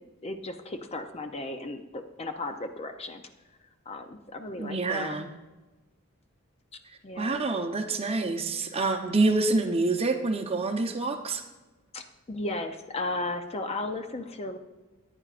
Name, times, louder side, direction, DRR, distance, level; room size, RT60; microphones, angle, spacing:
voice 1, 0.2-3.2 3.9-5.2 7.0-7.4 11.9-14.6, left 2 dB, 30° left, 7 dB, 0.5 m, -35 dB
voice 2, 4.6-5.3 7.2-11.4, right 3 dB, 25° right, 5 dB, 0.8 m, -27 dB
14.0 x 9.8 x 2.5 m, 1.2 s
head